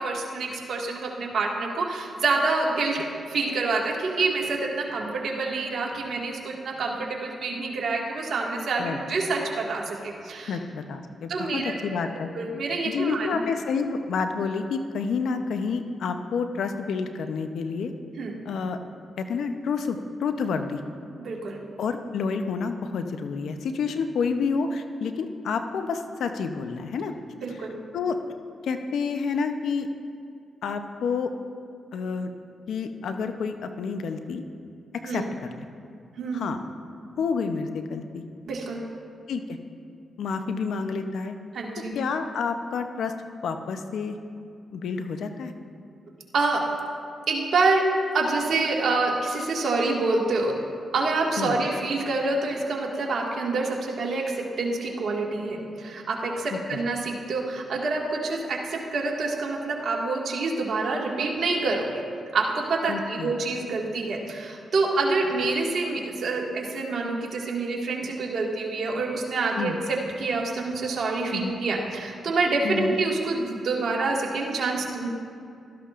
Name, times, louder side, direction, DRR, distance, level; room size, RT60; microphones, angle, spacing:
voice 1, 0.0-10.6 11.3-11.8 12.1-13.4 18.2-18.3 21.2-21.6 27.4-27.7 35.0-35.2 36.2-36.5 38.5-38.8 41.5-42.0 46.3-46.6 47.3-47.8 48.1-50.5 50.9-61.9 62.3-75.1, right 3 dB, 70° right, -1 dB, 1.9 m, -27 dB
voice 2, 10.5-12.3 12.8-17.9 18.4-18.8 19.2-20.8 21.8-27.1 27.9-28.2 28.6-29.9 30.6-31.3 31.9-32.3 32.7-34.4 34.9-35.6 36.3-36.6 37.2-38.2 39.3-39.6 40.2-41.4 41.9-43.1 43.4-44.2 44.7-45.5 51.4-51.6 56.5-56.6 62.9-63.3 69.5-69.8 71.3-71.5 72.6-73.0, left 5 dB, 75° left, 7 dB, 0.7 m, -29 dB
16.0 x 13.0 x 2.5 m, 2.4 s
supercardioid pair, 55°, 0 cm